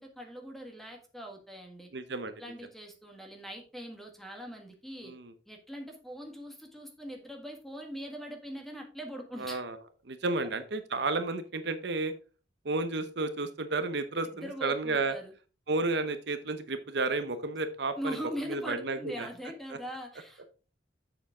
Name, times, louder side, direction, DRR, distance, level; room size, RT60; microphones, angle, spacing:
voice 1, 0.0-1.9 2.4-5.1 5.5-9.6 14.2-15.3 18.0-20.5, equal, ahead, 2 dB, 1.7 m, -41 dB
voice 2, 1.9-2.3 5.0-5.3 9.4-9.8 10.1-12.1 12.6-15.2 15.7-18.2 18.5-19.3, right 3 dB, 65° right, 10 dB, 0.8 m, -32 dB
7.4 x 6.8 x 3.7 m, 0.35 s
head